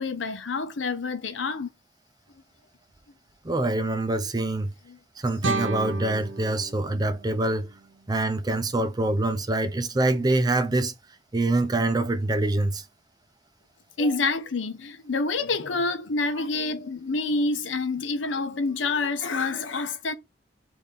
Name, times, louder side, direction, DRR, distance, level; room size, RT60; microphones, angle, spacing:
voice 1, 0.0-1.7 4.9-5.0 14.0-20.1, left 3 dB, 80° left, 0.7 m, -27 dB
voice 2, 3.4-4.7 5.2-7.7 8.1-10.9 11.3-12.8 14.0-14.1 16.4-16.5, right 2 dB, 20° right, 0.5 m, -25 dB
sound 1, 5.4-8.4, right 3 dB, 85° right, 0.7 m, -34 dB
5.6 x 2.7 x 3.4 m
head